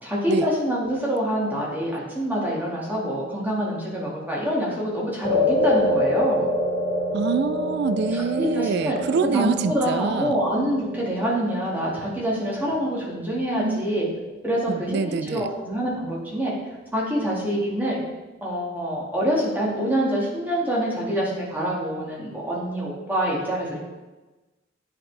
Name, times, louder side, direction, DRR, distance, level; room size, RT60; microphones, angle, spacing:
voice 1, 0.0-6.4 8.1-14.1 14.4-16.5 16.9-18.0 18.4-23.8, equal, 10° right, -5 dB, 1.8 m, -26 dB
sound 1, 5.2-13.7, left 1 dB, 65° left, 2.4 m, -27 dB
voice 2, 7.1-10.3 13.6-13.8 14.7-15.5, right 5 dB, 60° right, 12 dB, 0.3 m, -25 dB
9.7 x 4.3 x 3.3 m, 1.1 s
head